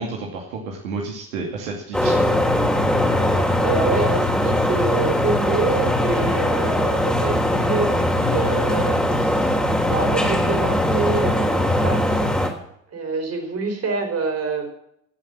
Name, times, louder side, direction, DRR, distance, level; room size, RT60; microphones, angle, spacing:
voice 1, 0.0-2.2, right 3 dB, 75° right, 0 dB, 2.5 m, -31 dB
sound 1, 1.9-12.5, left 1 dB, ahead, 3.8 m, -20 dB
voice 2, 3.6-9.6 9.9-12.3 12.9-14.7, right 4 dB, 35° right, 4 dB, 5.0 m, -26 dB
17.5 x 7.2 x 7.3 m, 0.74 s
hypercardioid pair, 70°, 40 cm